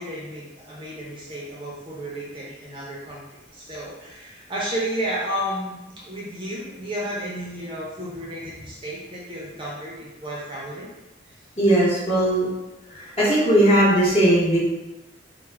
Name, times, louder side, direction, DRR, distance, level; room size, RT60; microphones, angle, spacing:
voice 1, 0.0-3.3 3.5-10.9, equal, 25° right, -5 dB, 0.5 m, -32 dB
voice 2, 11.6-12.5 12.9-14.6, right 1 dB, 35° left, -8 dB, 0.9 m, -18 dB
2.2 x 2.0 x 3.2 m, 1.0 s
head